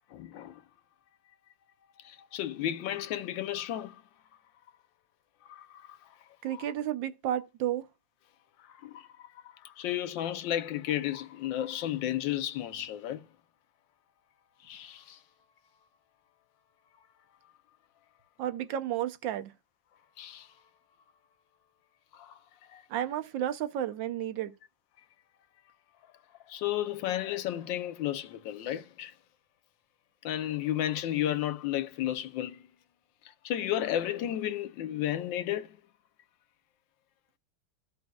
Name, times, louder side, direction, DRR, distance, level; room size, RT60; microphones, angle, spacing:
voice 1, 0.1-0.6 2.0-4.0 5.5-6.0 6.5-6.7 8.7-9.3 9.6-13.2 14.6-15.2 20.2-20.5 22.1-22.4 22.7-22.8 26.5-29.1 30.2-32.6 33.4-35.8, left 12 dB, 75° left, 1.3 m, -33 dB
voice 2, 6.4-7.9 18.4-19.5 22.9-24.5, right 11 dB, 75° right, 1.3 m, -32 dB
14.0 x 5.2 x 2.3 m
omnidirectional pair, 2.1 m